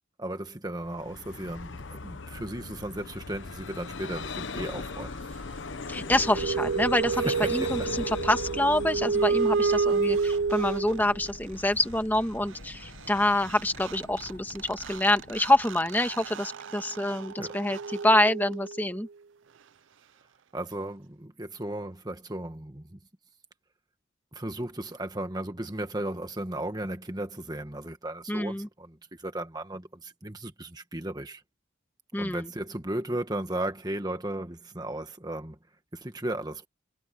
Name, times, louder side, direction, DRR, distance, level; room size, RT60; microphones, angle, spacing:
voice 1, 0.2-5.2 7.1-7.9 17.4-17.6 20.5-23.0 24.3-31.4 32.2-35.6 35.9-36.7, right 1 dB, 20° right, 1.4 m, -35 dB
Vehicle, 0.8-16.3, left 3 dB, 65° left, 0.9 m, -41 dB
voice 2, 5.9-19.1 28.3-28.7 32.1-32.5, left 1 dB, 10° left, 1.7 m, -26 dB
sound 1, 5.9-11.3 13.2-13.3 13.5-19.0, right 4 dB, 65° right, 0.5 m, -30 dB
head